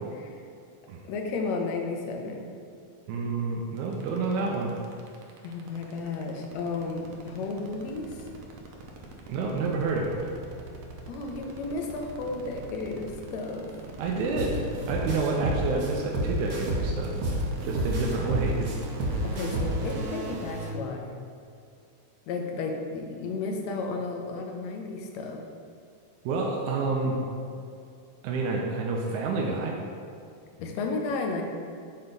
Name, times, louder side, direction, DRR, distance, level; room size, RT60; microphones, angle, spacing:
voice 1, 1.1-2.5 5.4-8.2 11.1-13.7 19.2-21.2 22.3-25.4 30.6-31.4, left 3 dB, 70° left, 2 dB, 2.0 m, -33 dB
voice 2, 3.1-4.7 9.3-10.3 14.0-17.2 17.6-18.8 26.3-27.2 28.2-29.8, right 3 dB, 90° right, -1 dB, 2.2 m, -29 dB
sound 1, 3.8-20.7, right 2 dB, 70° right, 1.8 m, -40 dB
sound 2, 14.4-14.5 14.9-17.4 17.7-19.9, right 1 dB, 55° right, 1.2 m, -29 dB
7.8 x 4.4 x 5.3 m, 2.5 s
omnidirectional pair, 3.3 m